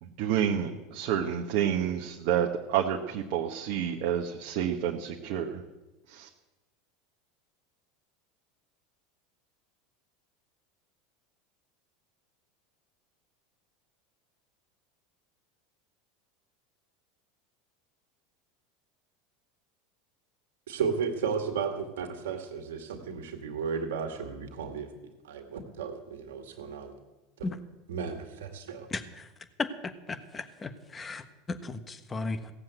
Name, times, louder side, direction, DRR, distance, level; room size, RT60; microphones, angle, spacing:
voice 1, 0.0-5.6 6.1-6.3, right 9 dB, 65° right, 1 dB, 1.2 m, -29 dB
voice 2, 20.7-24.9 25.2-26.9 27.4-27.5 27.9-28.9, right 6 dB, 80° right, 4 dB, 2.2 m, -34 dB
voice 3, 28.9-29.3 29.6-32.5, left 3 dB, 25° left, 9 dB, 1.3 m, -36 dB
16.5 x 7.5 x 8.0 m, 1.1 s
hypercardioid pair, 90°, 0 cm